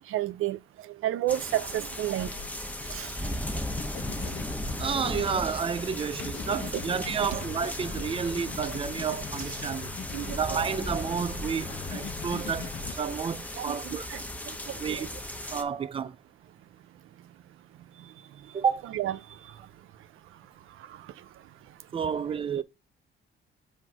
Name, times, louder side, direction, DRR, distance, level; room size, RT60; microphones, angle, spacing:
voice 1, 0.1-0.6 0.9-2.3 2.9-3.1 7.3-7.4 9.5-9.6 10.1-10.4 13.6-14.2 14.7-15.1 18.9-19.2, right 13 dB, 75° right, 0.5 m, -31 dB
sound 1, 1.3-15.6, left 1 dB, 5° left, 0.7 m, -36 dB
sound 2, 2.0-2.5 3.7-5.5 6.2-12.9, left 6 dB, 65° left, 1.0 m, -41 dB
voice 2, 4.8-9.9 10.3-14.1 14.8-15.1 15.5-16.2 18.5-18.8 21.9-22.6, right 7 dB, 25° right, 0.4 m, -30 dB
7.8 x 2.7 x 5.9 m
cardioid pair, 120°, 21 cm